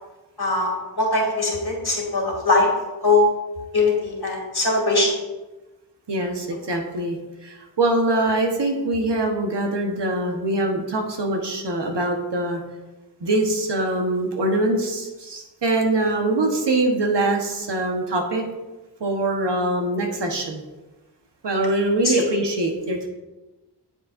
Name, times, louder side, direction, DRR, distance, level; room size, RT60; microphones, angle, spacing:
voice 1, 0.4-0.7 1.0-2.7 3.0-3.2 3.7-5.1 22.0-22.2, left 3 dB, 65° left, -2 dB, 2.6 m, -21 dB
voice 2, 6.1-7.2 7.4-12.6 13.2-18.4 19.0-20.6 21.4-23.1, right 2 dB, 80° right, 2 dB, 1.2 m, -23 dB
8.9 x 7.4 x 2.6 m, 1.1 s
wide cardioid pair, 55°, 41 cm